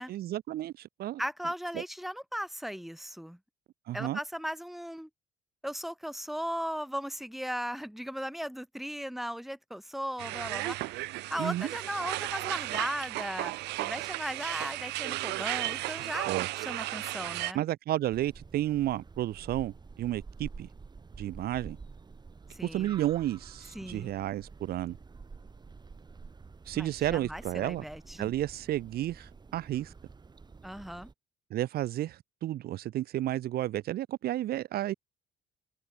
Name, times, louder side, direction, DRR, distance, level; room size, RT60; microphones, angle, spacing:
voice 1, 0.1-1.2 1.7-1.8 3.9-4.2 11.4-11.7 16.3-16.5 17.5-20.7 21.2-21.8 22.6-24.9 26.7-27.8 28.2-29.9 31.5-34.9, right 13 dB, 65° right, 1.4 m, -32 dB
voice 2, 1.2-3.4 3.9-5.1 5.6-13.5 13.8-17.6 22.5-22.9 23.7-24.1 26.7-28.3 30.6-31.1, equal, ahead, 5.3 m, -37 dB
sound 1, 10.2-17.5, right 20 dB, 90° right, 5.8 m, -34 dB
sound 2, 18.1-31.1, right 4 dB, 25° right, 6.6 m, -49 dB
cardioid pair, 110°, 17 cm